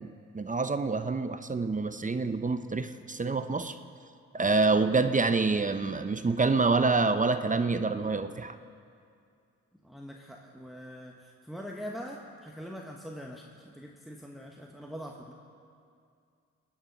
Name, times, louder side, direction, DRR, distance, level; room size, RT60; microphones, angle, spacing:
voice 1, 0.0-3.8 4.3-8.6, right 3 dB, 25° right, 10 dB, 0.7 m, -27 dB
voice 2, 9.8-15.3, equal, ahead, 0 dB, 1.2 m, -43 dB
19.0 x 9.5 x 5.4 m, 2.4 s
supercardioid pair, 50°, 31 cm